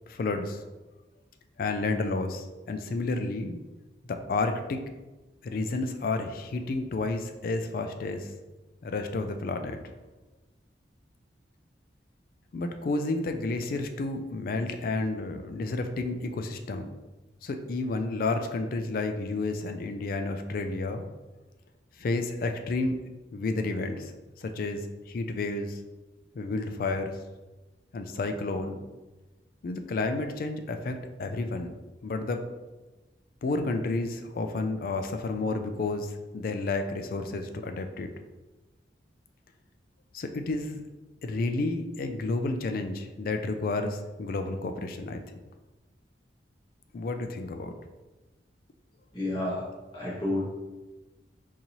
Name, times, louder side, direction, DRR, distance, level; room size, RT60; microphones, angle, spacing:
voice 1, 0.1-0.6 1.6-3.6 4.3-4.8 5.4-8.3 8.8-9.8 12.5-16.9 17.4-21.0 22.0-23.0 23.3-24.1 24.4-25.8 26.3-27.2 27.9-28.8 29.6-31.7 32.0-32.4 33.4-38.1 40.1-40.8 41.2-45.2 46.9-47.7, left 3 dB, 50° left, 6 dB, 0.3 m, -31 dB
voice 2, 49.1-50.4, left 1 dB, 25° left, -8 dB, 1.5 m, -31 dB
3.9 x 2.7 x 2.9 m, 1.1 s
head